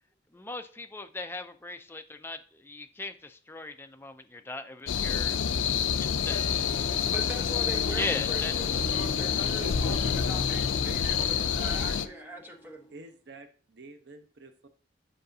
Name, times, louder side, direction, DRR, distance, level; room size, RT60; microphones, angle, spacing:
voice 1, 0.3-5.4 6.0-6.6 7.9-8.7, left 3 dB, 10° left, 0.4 m, -38 dB
sound 1, 4.9-12.1, left 7 dB, 80° left, 0.4 m, -28 dB
Harp, 5.9-13.0, equal, 30° left, 1.9 m, -44 dB
voice 2, 7.1-12.9, right 2 dB, 10° right, 1.0 m, -41 dB
voice 3, 9.6-10.5 10.8-11.9 12.9-14.7, right 2 dB, 60° right, 0.8 m, -47 dB
7.8 x 4.9 x 2.7 m
head